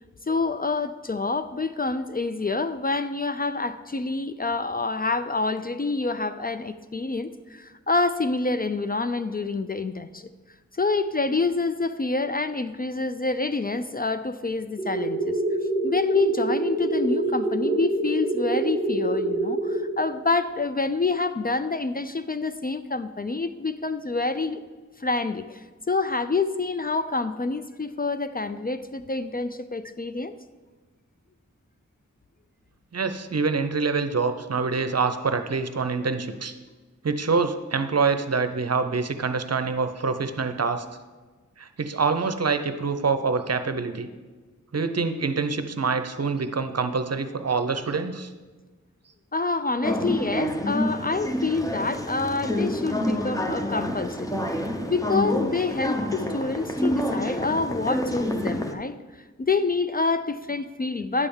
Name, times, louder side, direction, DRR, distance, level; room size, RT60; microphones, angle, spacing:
voice 1, 0.3-10.3 10.7-15.4 15.8-24.6 25.0-30.3 49.3-54.4 54.9-59.0 59.4-61.3, left 3 dB, 30° left, 11 dB, 0.4 m, -27 dB
sound 1, 14.8-19.8, right 2 dB, 60° left, 3.0 m, -26 dB
voice 2, 32.9-36.5 37.0-40.9 41.6-44.1 44.7-48.3, right 4 dB, 55° right, 9 dB, 0.7 m, -26 dB
sound 2, 49.8-58.7, left 1 dB, 10° left, 0.8 m, -28 dB
9.8 x 3.5 x 7.0 m, 1.3 s
wide cardioid pair, 40°, 31 cm